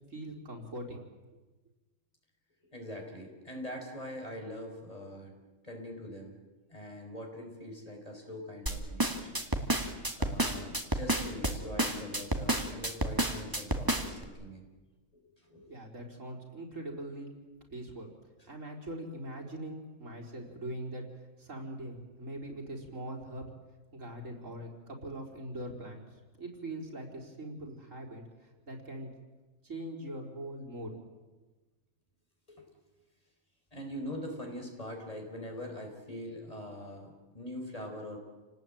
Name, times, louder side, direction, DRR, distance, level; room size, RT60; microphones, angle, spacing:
voice 1, 0.1-1.0 15.7-17.3 17.7-18.1 18.4-21.0 21.4-23.4 23.9-26.1 26.4-29.1 29.6-31.1, right 1 dB, 85° right, 0 dB, 4.7 m, -42 dB
voice 2, 2.7-5.3 5.6-6.4 6.7-9.4 10.2-14.6 15.1-15.8 32.5-32.6 33.7-38.2, left 1 dB, 30° left, 2 dB, 5.1 m, -43 dB
sound 1, 8.7-14.2, right 1 dB, 15° right, 2.2 m, -30 dB
29.0 x 19.0 x 9.0 m, 1.2 s
omnidirectional pair, 1.3 m